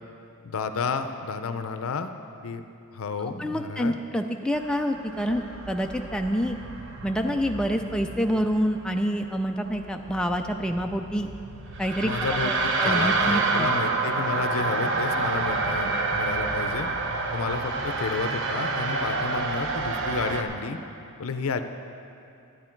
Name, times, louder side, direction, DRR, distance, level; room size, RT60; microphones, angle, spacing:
voice 1, 0.4-2.1 2.4-2.6 2.9-3.9 12.0-16.9 17.3-20.8 21.2-21.6, left 4 dB, 65° left, 8 dB, 0.6 m, -31 dB
voice 2, 3.2-6.6 7.0-11.3 11.8-13.7, equal, 5° left, 3 dB, 0.3 m, -27 dB
sound 1, 4.5-20.4, right 3 dB, 60° right, 0.8 m, -29 dB
11.0 x 10.5 x 4.5 m, 2.6 s
head